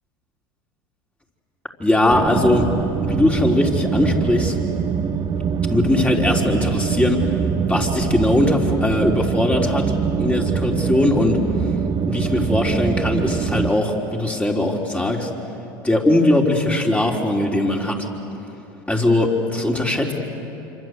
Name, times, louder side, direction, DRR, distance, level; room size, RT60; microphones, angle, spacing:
voice 1, 1.8-2.7 3.0-4.6 5.7-7.2 7.7-9.9 10.2-11.4 12.1-15.3 15.8-18.1 18.9-20.1, left 1 dB, 10° left, 0 dB, 4.1 m, -20 dB
sound 1, 2.1-13.7, right 6 dB, 35° right, 1.6 m, -23 dB
27.0 x 26.0 x 8.1 m, 2.9 s
hypercardioid pair, 90°, 12 cm